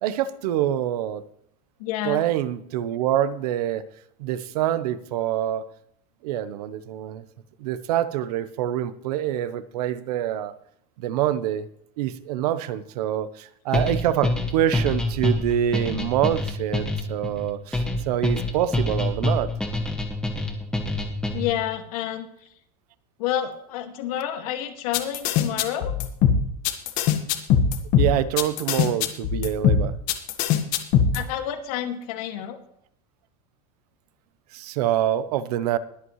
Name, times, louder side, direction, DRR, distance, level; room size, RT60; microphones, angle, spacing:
voice 1, 0.0-1.2 2.0-3.9 4.2-5.7 6.2-7.2 7.6-10.6 11.0-11.7 12.0-19.5 28.0-29.9 34.5-35.8, right 11 dB, 70° right, 15 dB, 1.0 m, -25 dB
voice 2, 1.8-2.2 21.3-22.3 23.2-25.9 31.1-32.6, left 11 dB, 65° left, 6 dB, 2.1 m, -29 dB
sound 1, 13.7-21.6, left 1 dB, 5° left, 1.5 m, -26 dB
sound 2, 24.9-31.2, left 8 dB, 45° left, 1.5 m, -21 dB
21.5 x 8.3 x 3.2 m, 0.70 s
supercardioid pair, 160°, 20 cm